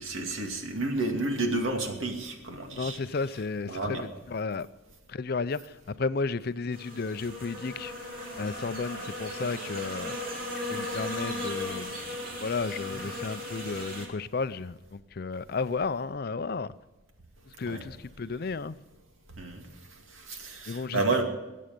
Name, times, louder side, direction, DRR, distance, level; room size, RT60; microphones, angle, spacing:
voice 1, 0.0-3.0 3.7-4.1 17.7-17.8 19.4-19.7 20.1-21.2, right 2 dB, 80° right, 2.3 m, -30 dB
voice 2, 2.8-4.7 5.1-7.9 8.4-10.2 10.7-11.9 12.4-16.7 17.5-18.8 20.7-21.0, left 4 dB, 50° left, 0.5 m, -33 dB
sound 1, 6.7-14.1, left 1 dB, 45° right, 2.9 m, -36 dB
22.0 x 8.5 x 5.2 m
head